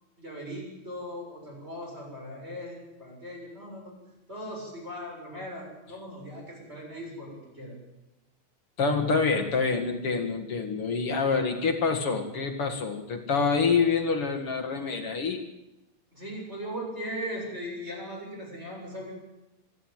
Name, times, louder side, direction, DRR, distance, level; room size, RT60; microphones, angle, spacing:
voice 1, 0.2-3.9 4.3-7.7 16.1-19.1, equal, 15° right, -1 dB, 7.1 m, -39 dB
voice 2, 8.8-15.4, left 4 dB, 45° left, 4 dB, 2.4 m, -26 dB
25.5 x 11.5 x 9.0 m, 0.97 s
omnidirectional pair, 3.9 m